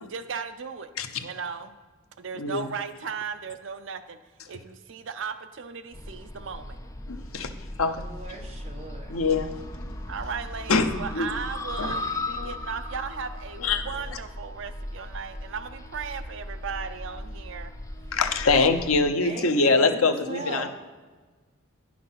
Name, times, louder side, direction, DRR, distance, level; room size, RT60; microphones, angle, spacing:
voice 1, 0.0-0.9 1.2-1.8 2.2-4.2 4.5-6.8 10.1-17.7, right 6 dB, 60° right, 10 dB, 0.5 m, -36 dB
voice 2, 2.4-2.7 7.1-7.5 7.8-8.1 9.1-9.6 10.7-11.3 11.8-12.0 12.4-12.5 13.6-13.8 18.1-20.7, left 3 dB, 80° left, 7 dB, 0.8 m, -24 dB
sound 1, 5.9-19.0, left 1 dB, 15° left, 0.4 m, -37 dB
voice 3, 8.0-9.1 19.2-20.7, right 1 dB, 30° right, 0 dB, 1.4 m, -38 dB
10.5 x 6.0 x 5.8 m, 1.3 s
head